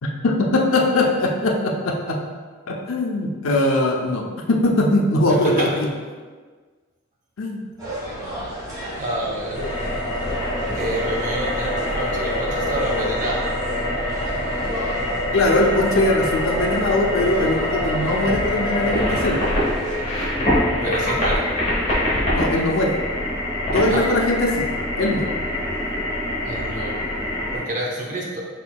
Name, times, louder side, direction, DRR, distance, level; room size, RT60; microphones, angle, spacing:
voice 1, 0.0-2.2 2.7-5.9 7.4-7.7 15.3-19.4 22.3-23.0 23.7-24.7 25.0-25.3, left 2 dB, 75° left, 1 dB, 0.5 m, -21 dB
voice 2, 5.3-5.8 8.9-9.7 10.8-13.5 20.8-21.5 23.9-24.1 26.5-27.0 27.5-28.5, right 1 dB, 40° right, -2 dB, 0.7 m, -28 dB
sound 1, 7.8-20.0, equal, 15° right, 1.5 m, -33 dB
sound 2, 9.6-27.6, left 1 dB, 30° left, 1.2 m, -24 dB
4.4 x 4.3 x 2.2 m, 1.5 s
head